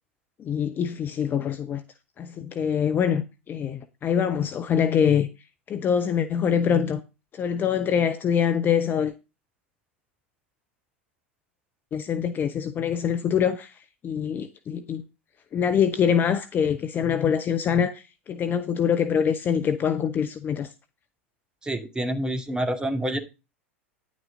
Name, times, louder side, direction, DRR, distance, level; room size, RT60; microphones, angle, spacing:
voice 1, 0.4-1.8 2.2-5.3 5.7-7.0 7.3-9.1 11.9-13.7 14.0-15.0 15.5-20.7, left 8 dB, 25° left, 0.9 m, -24 dB
voice 2, 21.6-23.2, right 1 dB, 10° right, 2.3 m, -27 dB
10.5 x 8.5 x 3.8 m
figure-of-eight pair, 85°, 7 cm